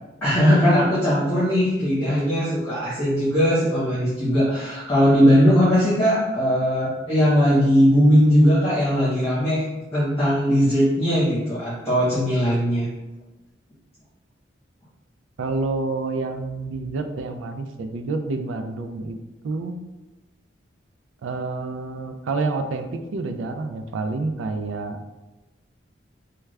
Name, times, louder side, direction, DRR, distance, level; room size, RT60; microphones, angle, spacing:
voice 1, 0.2-12.9, equal, 10° left, -12 dB, 1.2 m, -19 dB
voice 2, 15.4-19.2 19.4-19.7 21.2-25.0, right 3 dB, 90° right, 7 dB, 0.3 m, -28 dB
3.4 x 2.3 x 3.2 m, 1.1 s
head